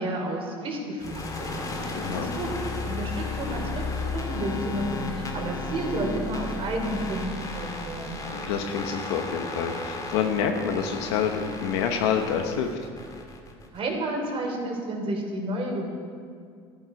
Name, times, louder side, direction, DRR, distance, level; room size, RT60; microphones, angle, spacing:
voice 1, 0.0-1.5 1.8-2.5 2.9-3.8 4.1-8.2 13.7-15.9, right 1 dB, 40° right, 1 dB, 3.5 m, -31 dB
sound 1, 1.0-13.8, left 3 dB, 25° left, 2.3 m, -34 dB
voice 2, 2.0-2.3 8.3-12.7, left 7 dB, 80° left, 4 dB, 1.0 m, -27 dB
13.5 x 12.0 x 5.2 m, 2.1 s
supercardioid pair, 95°, 14 cm